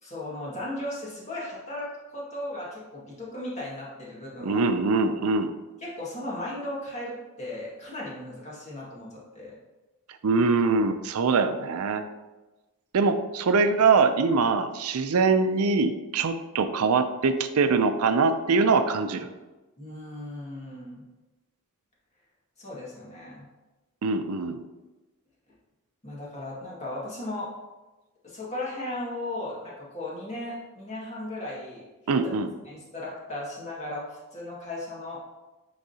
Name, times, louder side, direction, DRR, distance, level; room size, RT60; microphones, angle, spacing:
voice 1, 0.0-4.7 5.8-9.5 19.8-21.0 22.6-23.5 26.0-27.5 28.2-32.3 32.7-35.2, left 1 dB, 30° left, -6 dB, 1.9 m, -36 dB
voice 2, 4.4-5.5 10.2-12.0 12.9-19.3 24.0-24.6 32.1-32.5, right 4 dB, 75° right, 9 dB, 0.5 m, -23 dB
9.7 x 3.9 x 2.8 m, 1.1 s
head